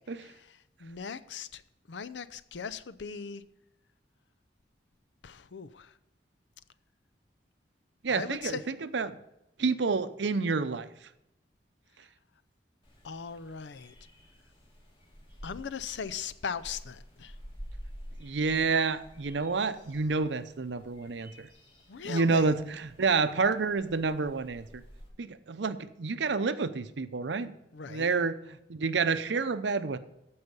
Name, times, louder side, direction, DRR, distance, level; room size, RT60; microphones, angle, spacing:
voice 1, 0.0-1.6 1.9-3.4 5.2-5.9 8.1-8.6 13.0-13.9 15.4-17.4 21.9-22.5 27.7-28.1, left 6 dB, 85° left, 0.5 m, -39 dB
voice 2, 8.0-9.2 9.6-10.9 18.2-21.5 22.0-24.8 25.2-27.5 27.9-30.0, right 4 dB, 80° right, 0.6 m, -29 dB
sound 1, 12.8-25.1, equal, 30° left, 2.3 m, -50 dB
14.5 x 5.6 x 5.4 m
head